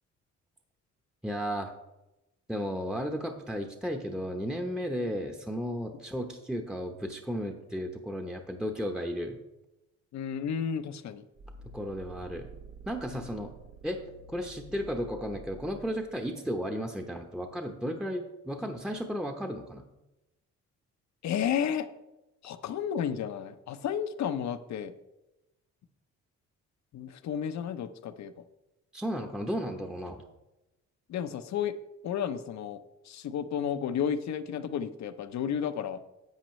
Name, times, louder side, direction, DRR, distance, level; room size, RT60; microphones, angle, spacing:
voice 1, 1.2-1.7 2.5-9.4 11.7-12.5 12.9-13.5 13.8-14.0 14.3-19.8 28.9-30.2, equal, ahead, 2 dB, 0.8 m, -34 dB
voice 2, 10.1-11.2 13.1-13.3 21.2-21.9 22.4-24.9 26.9-28.3 31.1-31.7 32.0-32.8 33.0-36.0, left 8 dB, 65° left, 10 dB, 0.8 m, -32 dB
sound 1, 11.4-16.3, right 3 dB, 50° right, 0.9 m, -49 dB
10.5 x 7.8 x 3.2 m, 0.96 s
cardioid pair, 90°, 30 cm